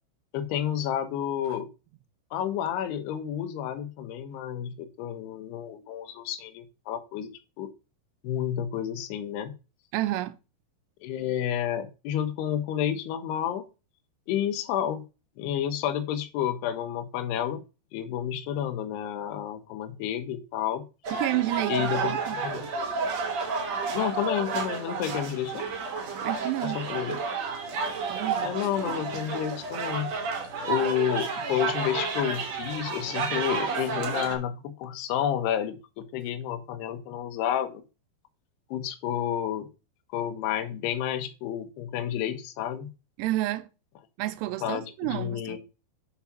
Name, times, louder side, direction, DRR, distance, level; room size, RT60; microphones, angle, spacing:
voice 1, 0.3-1.7 2.3-7.3 7.6-7.7 8.2-9.5 11.0-13.6 14.3-15.0 15.4-17.6 17.9-20.8 21.7-22.2 22.4-22.7 23.9-25.7 26.6-27.2 28.4-30.1 30.6-37.8 38.7-39.7 40.1-42.9 44.6-45.6, left 10 dB, 80° left, 2.8 m, -30 dB
voice 2, 9.9-10.4 21.1-22.4 26.2-26.8 28.1-28.5 43.2-43.7 44.2-45.6, right 16 dB, 85° right, 2.8 m, -30 dB
sound 1, 21.0-34.4, right 5 dB, 55° right, 2.0 m, -31 dB
7.1 x 4.7 x 5.8 m
omnidirectional pair, 4.9 m